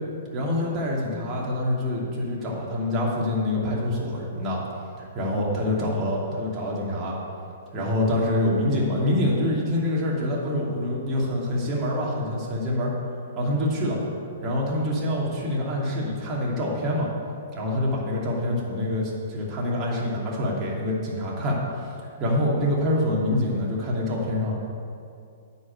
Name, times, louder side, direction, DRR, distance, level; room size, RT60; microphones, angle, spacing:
voice 1, 0.3-4.6 5.0-7.1 7.7-12.9 13.4-14.0 14.4-17.1 17.5-21.6 22.0-24.6, left 1 dB, 25° right, -5 dB, 2.7 m, -26 dB
9.5 x 5.5 x 8.0 m, 2.5 s
hypercardioid pair, 130°, 0 cm